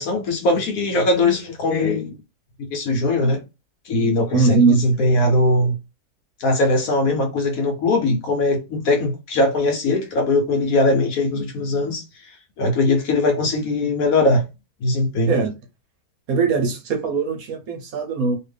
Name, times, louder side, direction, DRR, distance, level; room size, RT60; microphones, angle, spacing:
voice 1, 0.0-2.2 2.6-3.4 3.9-5.8 6.4-12.0 12.6-14.5 14.8-15.3, left 2 dB, 65° left, 1.1 m, -20 dB
voice 2, 4.3-4.8 15.3-15.6 16.3-18.4, right 4 dB, 65° right, 1.1 m, -20 dB
2.8 x 2.5 x 3.3 m
omnidirectional pair, 1.8 m